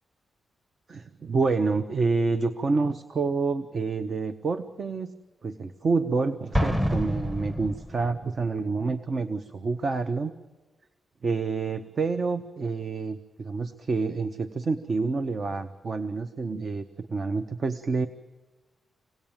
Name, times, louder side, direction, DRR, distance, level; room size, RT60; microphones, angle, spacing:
voice 1, 0.9-5.1 5.4-10.3 11.2-18.1, right 4 dB, 40° right, 10 dB, 0.8 m, -28 dB
Explosion, 6.5-8.3, equal, 15° right, 1.7 m, -27 dB
26.0 x 18.5 x 8.9 m, 1.2 s
wide cardioid pair, 170°, 0 cm